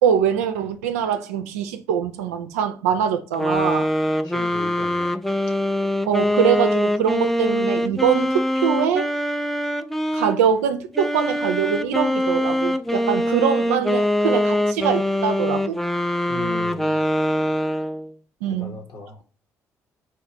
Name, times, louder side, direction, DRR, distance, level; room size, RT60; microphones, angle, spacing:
voice 1, 0.0-3.9 6.1-9.1 10.1-15.8 18.4-18.8, right 8 dB, 75° right, 0.4 m, -23 dB
sound 1, 3.3-10.4 10.9-18.1, left 1 dB, 5° left, 0.3 m, -23 dB
voice 2, 4.2-5.1 16.3-17.0 18.6-19.2, left 2 dB, 55° left, 1.0 m, -36 dB
4.4 x 2.4 x 2.9 m
figure-of-eight pair, 45°, 8 cm